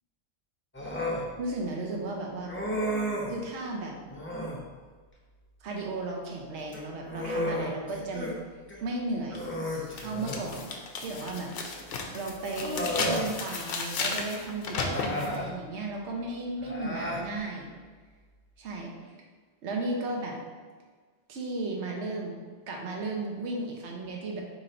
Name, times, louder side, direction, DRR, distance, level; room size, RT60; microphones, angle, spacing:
Human voice, 0.7-1.3 2.5-3.4 4.1-4.6 6.6-8.3 8.7-8.8 9.3-10.5 11.7-11.8 12.5-13.3 14.7-15.5 16.6-17.2, equal, 15° left, 0.5 m, -33 dB
voice 1, 1.4-2.5 3.3-3.9 5.6-8.3 8.8-9.5 10.0-10.7 11.0-11.5 12.1-17.7 18.6-19.1 19.6-20.4 21.3-22.3 22.7-24.4, right 2 dB, 75° right, 0 dB, 1.0 m, -34 dB
sound 1, 9.3-9.4 9.9-15.4, left 4 dB, 60° left, 0.7 m, -34 dB
3.8 x 3.0 x 4.3 m, 1.4 s
omnidirectional pair, 1.2 m